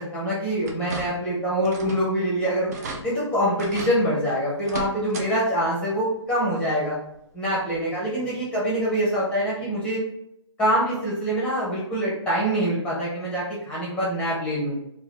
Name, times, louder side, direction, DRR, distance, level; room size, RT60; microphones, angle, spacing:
voice 1, 0.0-7.0 7.3-10.0 10.6-14.8, equal, 5° left, -6 dB, 0.7 m, -25 dB
sound 1, 0.6-1.3 1.6-2.1 2.4-2.5 2.7-3.0 3.6-4.0 4.6-5.3 5.6-5.7 7.1-7.2 7.7-7.8, right 4 dB, 35° right, 0.4 m, -35 dB
3.8 x 2.4 x 3.0 m, 0.80 s
hypercardioid pair, 160°, 16 cm